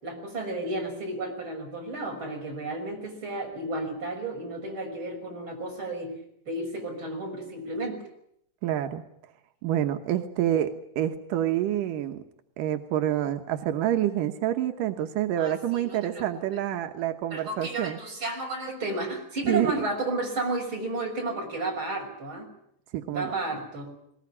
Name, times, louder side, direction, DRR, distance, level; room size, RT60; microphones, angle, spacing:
voice 1, 0.0-6.2 6.5-8.0 15.4-16.4 17.3-22.5 23.1-23.9, right 2 dB, 35° right, 3 dB, 6.8 m, -32 dB
voice 2, 8.6-9.0 9.6-12.2 12.6-18.0 19.4-19.7 22.9-23.3, right 12 dB, 90° right, 7 dB, 2.7 m, -27 dB
21.0 x 20.0 x 9.8 m, 0.75 s
omnidirectional pair, 3.7 m